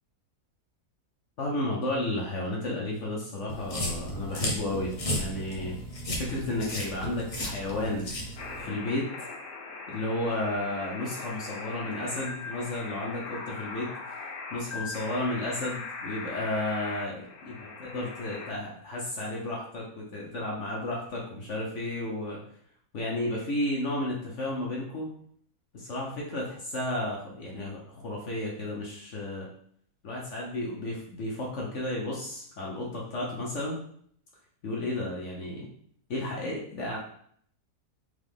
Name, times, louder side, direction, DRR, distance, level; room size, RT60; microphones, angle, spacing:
voice 1, 1.4-5.8 6.2-8.1 8.6-9.1 9.9-13.9 14.5-22.4 22.9-25.1 25.7-29.5 30.0-33.8 34.6-35.7 36.1-37.0, left 1 dB, 55° left, -3 dB, 1.1 m, -33 dB
sound 1, 3.5-8.6, equal, 35° left, 0.6 m, -34 dB
sound 2, 8.4-18.5, left 4 dB, 75° left, 1.2 m, -40 dB
3.8 x 3.7 x 3.5 m, 0.63 s
omnidirectional pair, 1.6 m